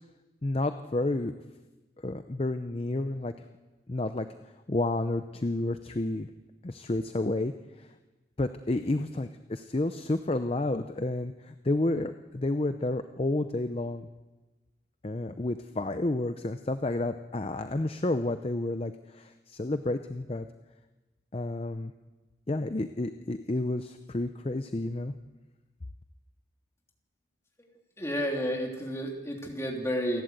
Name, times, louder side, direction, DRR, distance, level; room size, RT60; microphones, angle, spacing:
voice 1, 0.4-1.3 2.0-3.3 3.9-4.3 4.7-6.3 6.6-7.5 7.8-7.9 8.4-14.1 15.0-20.5 21.3-21.9 22.5-25.1, left 2 dB, 35° left, 9 dB, 0.6 m, -30 dB
voice 2, 28.0-30.2, equal, 15° left, 0 dB, 3.0 m, -31 dB
28.0 x 11.5 x 8.1 m, 1.2 s
head